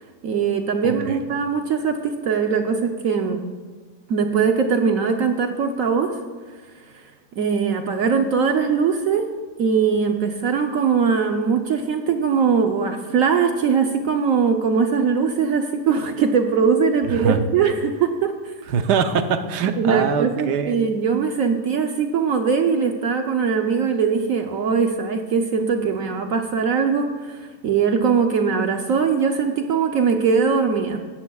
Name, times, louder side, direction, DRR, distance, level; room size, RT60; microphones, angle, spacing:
voice 1, 0.2-3.4 4.1-6.2 7.4-9.3 9.6-18.5 19.8-31.0, right 6 dB, 60° right, 4 dB, 1.0 m, -21 dB
voice 2, 0.8-1.2 17.1-17.4 18.7-20.9, right 6 dB, 80° right, 8 dB, 1.4 m, -23 dB
18.0 x 13.5 x 2.4 m, 1.5 s
omnidirectional pair, 1.8 m